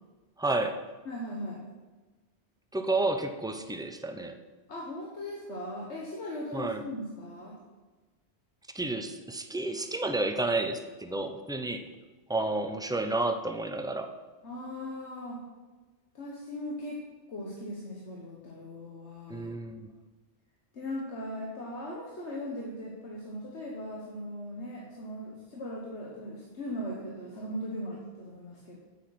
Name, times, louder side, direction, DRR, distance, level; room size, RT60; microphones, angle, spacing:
voice 1, 0.4-0.8 2.7-4.4 6.5-6.8 8.7-11.8 12.3-14.1 19.3-19.9, right 2 dB, 5° right, 6 dB, 0.5 m, -31 dB
voice 2, 1.0-1.6 4.7-7.6 14.4-15.4 16.1-17.0 17.3-19.5 20.7-28.8, left 1 dB, 75° left, -3 dB, 1.7 m, -39 dB
8.8 x 8.2 x 5.9 m, 1.3 s
omnidirectional pair, 1.2 m